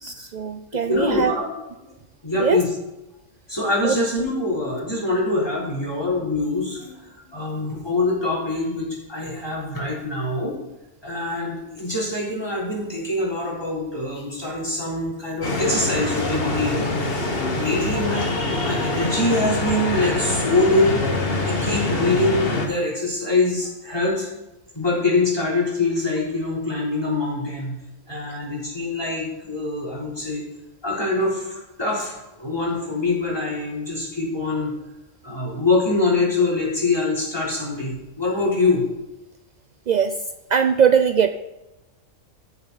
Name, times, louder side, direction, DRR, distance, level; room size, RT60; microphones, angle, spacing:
voice 1, 0.0-1.3 2.3-2.6 3.8-4.0 39.9-40.1 40.5-41.3, right 7 dB, 75° right, 8 dB, 0.4 m, -20 dB
voice 2, 0.9-1.4 1.8-1.9 2.2-2.7 3.5-6.9 7.3-10.5 11.0-16.9 17.5-21.0 21.4-24.3 24.7-27.8 28.1-30.4 30.8-34.8 35.2-38.9, left 2 dB, 20° left, -5 dB, 3.5 m, -24 dB
sound 1, 15.4-22.7, left 2 dB, 50° left, 1.5 m, -24 dB
14.0 x 7.2 x 4.0 m, 0.99 s
omnidirectional pair, 1.3 m